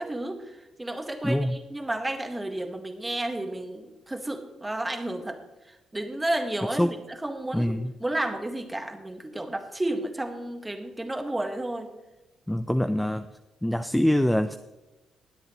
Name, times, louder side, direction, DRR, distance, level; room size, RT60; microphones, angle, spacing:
voice 1, 0.0-5.4 5.7-7.7 8.0-11.9, right 1 dB, 15° right, 5 dB, 1.7 m, -32 dB
voice 2, 1.2-1.5 6.8-6.9 7.5-7.9 12.5-13.3 13.6-14.6, left 1 dB, 5° left, 9 dB, 0.5 m, -24 dB
20.5 x 7.9 x 3.1 m, 1.1 s
cardioid pair, 90°, 0 cm